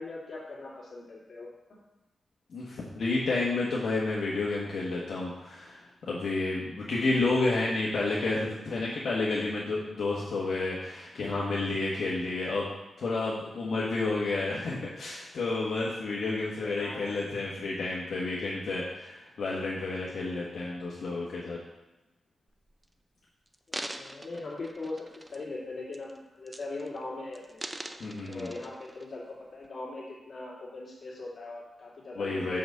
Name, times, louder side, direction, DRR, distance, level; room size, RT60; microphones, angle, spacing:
voice 1, 0.0-1.8 16.6-17.3 23.7-27.6 28.3-32.6, left 2 dB, 45° left, -5 dB, 2.6 m, -40 dB
voice 2, 2.5-12.7 13.0-21.6 28.0-28.5 32.2-32.6, left 3 dB, 70° left, -6 dB, 1.4 m, -30 dB
sound 1, 22.5-22.8 23.5-25.6 25.9-26.2 26.5-27.0 27.3-29.1 29.6-29.7, right 1 dB, 15° right, 0.4 m, -42 dB
5.9 x 5.1 x 6.6 m, 0.96 s
wide cardioid pair, 145°, 0 cm